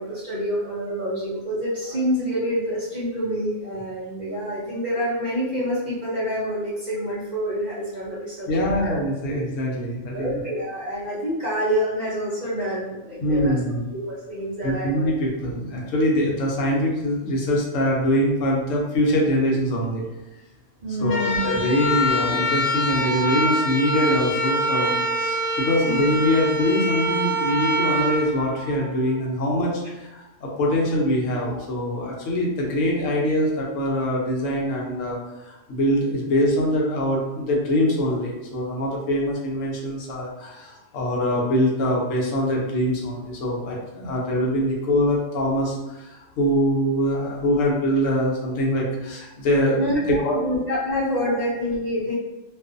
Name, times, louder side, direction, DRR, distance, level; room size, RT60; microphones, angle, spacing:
voice 1, 0.0-8.9 10.1-13.5 13.9-15.1 20.8-21.6 25.8-26.0 43.4-43.5 49.8-50.0 50.4-52.1, equal, 45° right, -8 dB, 0.6 m, -27 dB
voice 2, 8.5-10.3 13.2-13.9 14.6-20.0 21.0-49.8 50.1-50.4 51.2-51.3, equal, 75° left, -2 dB, 1.0 m, -23 dB
sound 1, 21.0-29.2, equal, 50° left, 0.7 m, -25 dB
2.5 x 2.4 x 2.4 m, 0.99 s
omnidirectional pair, 1.4 m